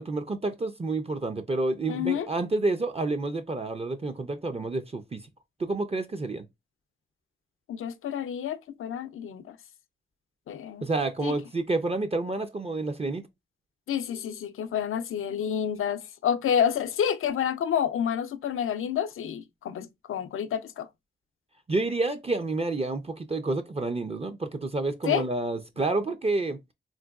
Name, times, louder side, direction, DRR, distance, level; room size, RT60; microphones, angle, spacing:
voice 1, 0.0-5.3 5.6-6.4 10.8-13.2 21.7-26.6, right 2 dB, 30° right, 0.4 m, -29 dB
voice 2, 1.9-2.3 7.7-9.6 10.5-10.9 11.2-11.3 13.9-20.9 25.0-25.2, left 8 dB, 80° left, 0.4 m, -29 dB
3.8 x 2.2 x 2.3 m
cardioid pair, 45°, 21 cm